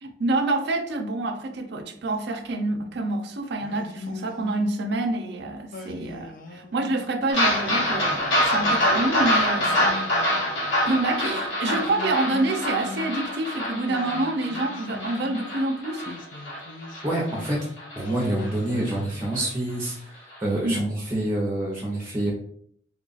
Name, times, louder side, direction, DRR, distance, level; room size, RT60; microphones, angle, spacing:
voice 1, 0.0-10.4 10.8-16.2 20.6-20.8, right 2 dB, 65° right, 6 dB, 0.5 m, -27 dB
Singing, 3.6-5.1 5.7-7.0 7.6-9.0 9.6-11.1 11.7-13.5 13.9-15.5 16.0-17.6 18.0-19.6, left 4 dB, 45° left, 0.5 m, -41 dB
sound 1, 7.3-18.0 18.4-18.5 18.9-19.0 19.3-19.4, left 1 dB, 85° left, 1.3 m, -25 dB
voice 2, 17.0-17.6 18.0-22.3, right 1 dB, 15° right, -3 dB, 0.7 m, -27 dB
3.4 x 2.4 x 3.9 m, 0.65 s
head